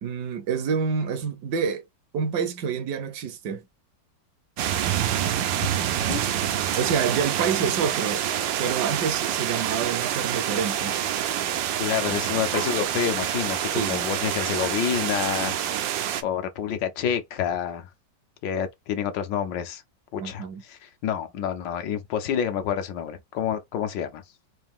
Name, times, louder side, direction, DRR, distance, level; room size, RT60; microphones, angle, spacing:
voice 1, 0.0-1.9 2.1-3.6 6.8-8.2 8.6-10.9 13.7-14.0 20.2-20.6, right 6 dB, 70° right, 1.2 m, -27 dB
sound 1, 4.6-16.2, right 10 dB, 85° right, 1.4 m, -27 dB
voice 2, 11.8-15.9 16.2-17.9 18.4-19.8 20.1-24.2, left 9 dB, 80° left, 1.5 m, -28 dB
3.9 x 2.5 x 3.5 m
omnidirectional pair, 2.0 m